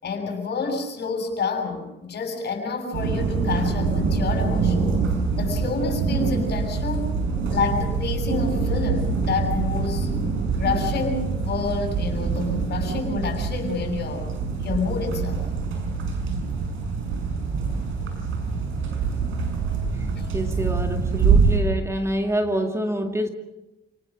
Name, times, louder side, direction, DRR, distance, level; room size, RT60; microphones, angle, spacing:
voice 1, 0.0-4.9 5.4-7.2 7.5-10.1 10.6-14.3 14.6-15.4 20.2-20.3, left 4 dB, 55° left, 7.3 m, -28 dB
sound 1, 2.9-21.6, right 5 dB, 80° right, 6.5 m, -25 dB
voice 2, 20.3-23.3, right 1 dB, 15° right, 2.2 m, -26 dB
29.5 x 19.0 x 6.3 m
cardioid pair, 90°, 20 cm